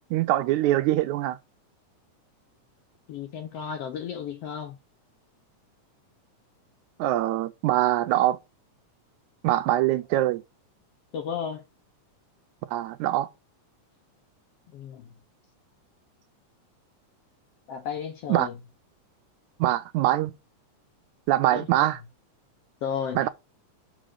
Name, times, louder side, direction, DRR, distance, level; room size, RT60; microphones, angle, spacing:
voice 1, 0.1-1.4 7.0-8.4 9.4-10.4 12.7-13.3 18.3-18.5 19.6-20.3 21.3-22.0 23.2-23.3, right 14 dB, 80° right, 1.9 m, -23 dB
voice 2, 3.1-4.7 11.1-11.6 14.7-15.1 17.7-18.5 21.5-21.7 22.8-23.2, left 7 dB, 65° left, 1.6 m, -33 dB
6.1 x 5.1 x 6.5 m
omnidirectional pair, 3.6 m